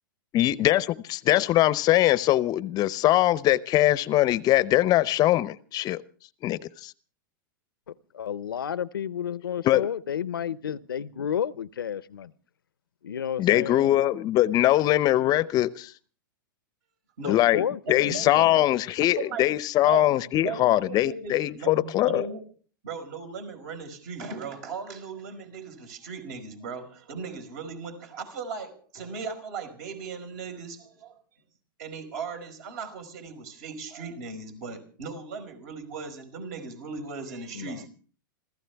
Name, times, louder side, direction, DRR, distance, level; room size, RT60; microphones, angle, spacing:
voice 1, 0.3-6.0 6.4-6.9 9.6-9.9 13.4-15.9 17.3-17.6 17.9-22.3, left 15 dB, 35° left, 0.7 m, -22 dB
voice 2, 7.9-12.3 13.0-13.9 17.2-18.6 37.5-37.9, left 9 dB, 85° left, 0.7 m, -32 dB
voice 3, 18.0-18.6 19.1-19.5 19.8-22.4 22.8-31.2 31.8-37.9, right 5 dB, 60° right, 4.9 m, -37 dB
26.5 x 15.5 x 3.5 m
hypercardioid pair, 110°, 11 cm